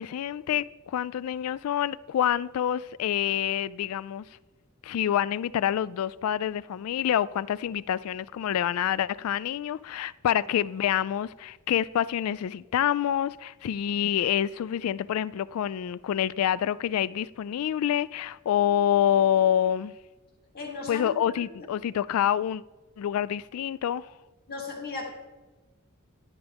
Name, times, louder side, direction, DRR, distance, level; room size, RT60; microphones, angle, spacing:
voice 1, 0.0-4.2 4.8-19.9 20.9-22.6 23.0-24.1, left 10 dB, 85° left, 0.3 m, -27 dB
voice 2, 20.5-21.1 24.5-25.1, left 3 dB, 45° left, 2.9 m, -36 dB
12.5 x 10.0 x 3.5 m
head